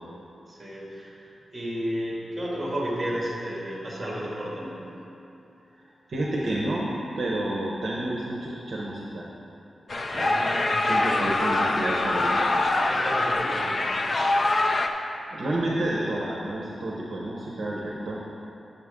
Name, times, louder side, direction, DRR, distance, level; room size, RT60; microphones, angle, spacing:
voice 1, 0.5-4.8 10.1-11.3 12.9-13.9, equal, 20° right, -6 dB, 2.0 m, -33 dB
voice 2, 5.8-9.3 10.1-10.4 10.8-12.5 15.3-18.2, right 1 dB, 55° right, -4 dB, 0.8 m, -30 dB
sound 1, 9.9-14.9, left 2 dB, 40° left, 0.5 m, -24 dB
9.7 x 6.8 x 3.6 m, 2.9 s
wide cardioid pair, 175°, 0 cm